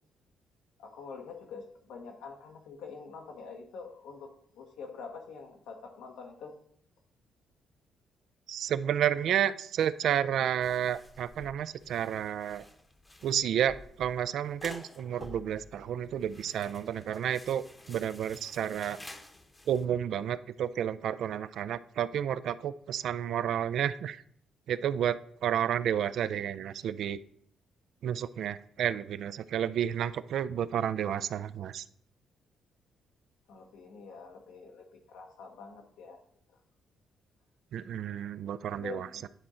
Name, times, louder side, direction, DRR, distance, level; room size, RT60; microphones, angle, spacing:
voice 1, 0.8-6.6 33.5-36.2 38.8-39.3, left 5 dB, 90° left, 2 dB, 1.3 m, -46 dB
voice 2, 8.5-12.6 13.2-19.0 19.7-24.2 24.7-27.2 28.0-31.8 37.7-39.3, right 9 dB, 70° right, 15 dB, 0.3 m, -31 dB
sound 1, 10.6-19.9, left 2 dB, 15° left, 0.8 m, -51 dB
9.8 x 3.7 x 4.2 m, 0.64 s
cardioid pair, 90°, 0 cm